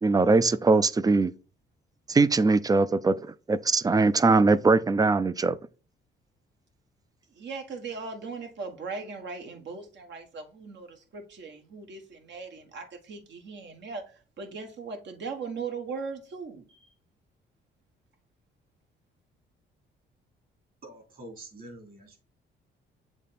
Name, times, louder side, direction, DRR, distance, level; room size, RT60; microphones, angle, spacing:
voice 1, 0.0-1.3 2.1-3.1 3.5-5.6, right 3 dB, 20° right, 0.4 m, -21 dB
voice 2, 7.3-14.0 14.4-16.8, right 4 dB, 65° right, 1.7 m, -38 dB
voice 3, 20.8-22.2, right 1 dB, 45° right, 3.4 m, -46 dB
7.1 x 3.2 x 4.1 m
cardioid pair, 90°, 20 cm